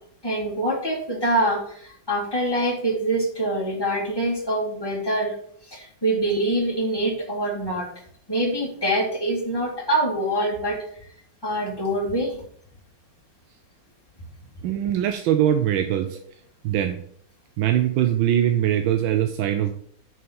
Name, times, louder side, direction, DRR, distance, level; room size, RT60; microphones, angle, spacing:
voice 1, 0.2-5.4 5.6-7.9 8.3-10.8 11.4-12.4, right 1 dB, 15° left, -2 dB, 1.8 m, -25 dB
voice 2, 14.6-16.2 16.6-17.1 17.6-19.7, right 11 dB, 85° right, 8 dB, 1.4 m, -22 dB
6.3 x 5.8 x 5.3 m, 0.62 s
omnidirectional pair, 2.1 m